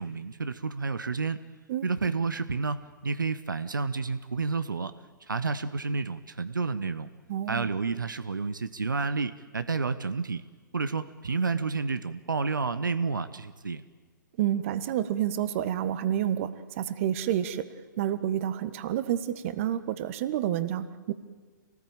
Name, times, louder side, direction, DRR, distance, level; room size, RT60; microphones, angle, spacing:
voice 1, 0.0-1.4 1.8-4.9 5.3-7.1 7.5-10.4 10.7-13.8, right 4 dB, 75° right, 12 dB, 1.1 m, -30 dB
voice 2, 7.3-7.7 14.4-17.7 18.0-21.1, right 11 dB, 40° right, 13 dB, 1.5 m, -29 dB
26.5 x 19.0 x 8.9 m, 1.4 s
figure-of-eight pair, 120°, 11 cm